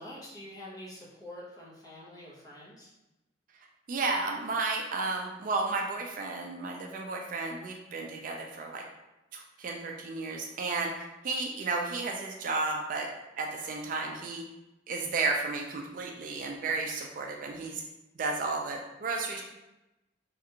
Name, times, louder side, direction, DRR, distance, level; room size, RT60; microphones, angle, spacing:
voice 1, 0.0-2.9, left 1 dB, 20° left, -6 dB, 0.8 m, -46 dB
voice 2, 3.9-8.8 9.3-14.4 14.9-17.8 18.2-19.4, right 3 dB, 45° right, 2 dB, 0.3 m, -33 dB
3.3 x 2.5 x 2.8 m, 0.99 s
head